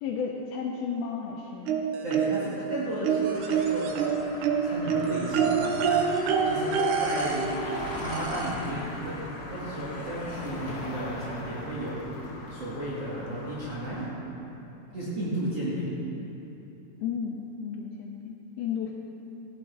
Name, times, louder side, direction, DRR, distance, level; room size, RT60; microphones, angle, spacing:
voice 1, 0.0-1.8 17.0-18.9, left 6 dB, 80° left, 0 dB, 2.5 m, -33 dB
sound 1, 1.7-2.6 3.0-8.7 9.9-10.0 10.4-10.5, right 6 dB, 80° right, 1.7 m, -27 dB
voice 2, 2.0-7.7 8.0-12.1 12.5-14.1 14.9-15.9, right 1 dB, 45° right, -9 dB, 2.7 m, -34 dB
sound 2, 3.2-14.1, left 2 dB, 60° left, 2.8 m, -40 dB
16.0 x 11.0 x 4.7 m, 3.0 s
omnidirectional pair, 4.7 m